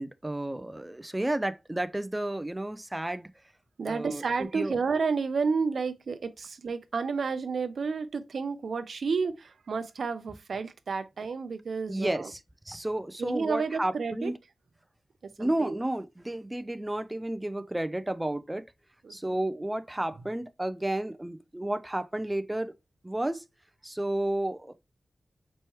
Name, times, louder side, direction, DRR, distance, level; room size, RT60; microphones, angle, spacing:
voice 1, 0.0-3.3 3.9-4.2 4.5-4.8 11.9-12.4 12.7-14.3 15.4-18.6 19.1-22.7 23.0-23.4 23.8-24.7, right 1 dB, 15° right, 0.3 m, -31 dB
voice 2, 3.8-12.3 13.2-14.3 15.2-15.8 19.0-19.4, right 5 dB, 80° right, 0.5 m, -31 dB
4.5 x 3.1 x 3.0 m
wide cardioid pair, 105°, 0 cm